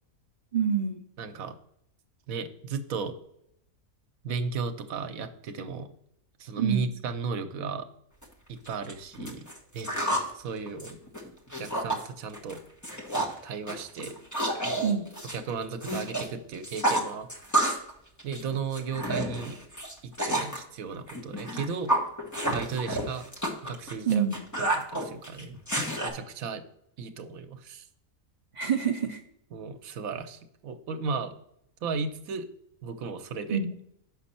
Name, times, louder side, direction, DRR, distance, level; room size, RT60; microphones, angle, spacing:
voice 1, 0.5-1.0 6.6-6.9 14.8-15.1 24.1-24.4 28.5-29.2 33.5-33.7, right 7 dB, 50° right, 3 dB, 0.5 m, -26 dB
voice 2, 1.2-1.6 2.3-3.2 4.2-5.9 6.4-7.9 8.5-9.5 9.7-9.9 10.3-11.0 11.6-12.6 13.4-14.2 15.3-17.5 18.2-19.6 20.0-22.0 22.5-23.3 23.6-24.3 24.6-25.6 26.0-26.6 27.0-27.9 29.5-31.3 31.8-32.5 32.8-33.6, right 5 dB, 75° right, 7 dB, 1.1 m, -35 dB
sound 1, 8.2-8.3 8.7-10.3 10.7-12.0 12.3-12.6 12.8-13.4 13.7-16.3 16.5-17.9 18.2-20.6 21.1-26.1, right 1 dB, 15° left, 1.0 m, -30 dB
6.4 x 5.2 x 4.2 m, 0.74 s
omnidirectional pair, 1.5 m